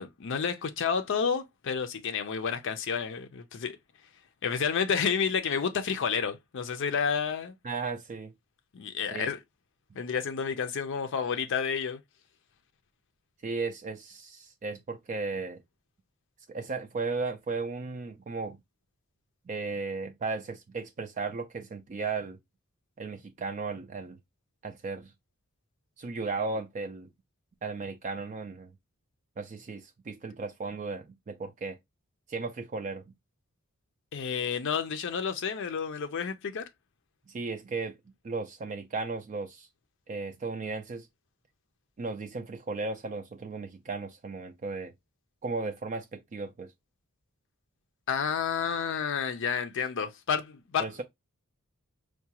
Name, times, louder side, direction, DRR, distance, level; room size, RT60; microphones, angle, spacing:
voice 1, 0.0-3.8 4.4-7.5 8.7-9.4 9.9-12.0 34.1-36.6 48.1-51.0, left 6 dB, 60° left, 0.5 m, -30 dB
voice 2, 7.6-8.3 9.1-9.3 13.4-15.6 16.5-18.6 19.5-22.4 23.0-24.2 24.6-25.1 26.0-27.1 27.6-28.7 29.4-31.8 32.3-33.0 37.3-38.0 38.2-39.7 40.1-41.1 42.0-44.9 45.4-46.7 50.8-51.0, right 4 dB, 35° right, 0.3 m, -35 dB
4.6 x 2.2 x 2.8 m
head